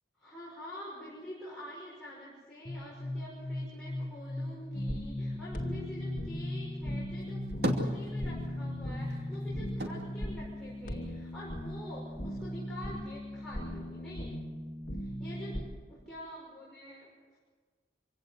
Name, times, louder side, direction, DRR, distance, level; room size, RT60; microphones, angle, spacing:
voice 1, 0.2-14.4 15.0-17.4, left 1 dB, 5° left, -7 dB, 6.1 m, -47 dB
sound 1, 2.7-10.2, left 1 dB, 20° right, 3.4 m, -38 dB
sound 2, 4.7-15.6, equal, 50° left, 2.5 m, -39 dB
sound 3, 7.2-8.7 9.0-11.4 11.7-12.6, equal, 65° right, 2.6 m, -36 dB
25.5 x 17.0 x 8.0 m, 1.4 s
head